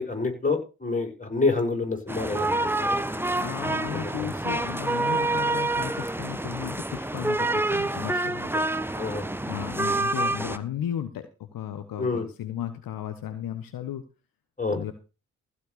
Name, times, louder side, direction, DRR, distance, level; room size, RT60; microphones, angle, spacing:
voice 1, 0.0-3.4 3.9-4.4 8.9-9.3 12.0-12.3 14.6-14.8, left 3 dB, 20° left, 2 dB, 6.2 m, -28 dB
sound 1, 2.1-10.6, right 2 dB, 5° right, 1.3 m, -27 dB
voice 2, 3.4-8.5 9.5-14.0 14.7-14.9, left 10 dB, 65° left, 9 dB, 1.4 m, -35 dB
15.5 x 5.7 x 6.8 m, 0.32 s
hypercardioid pair, 40°, 37 cm